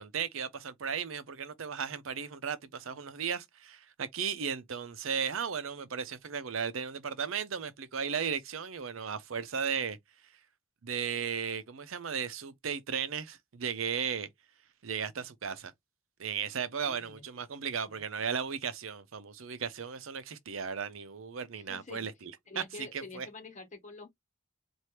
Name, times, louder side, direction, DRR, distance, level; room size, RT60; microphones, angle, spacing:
voice 1, 0.0-10.0 10.8-14.3 14.8-15.7 16.2-23.3, right 7 dB, 85° right, 0.6 m, -35 dB
voice 2, 16.8-17.2 17.9-18.0 21.5-22.1 22.5-24.1, left 3 dB, 35° left, 1.2 m, -47 dB
4.4 x 2.6 x 3.2 m
head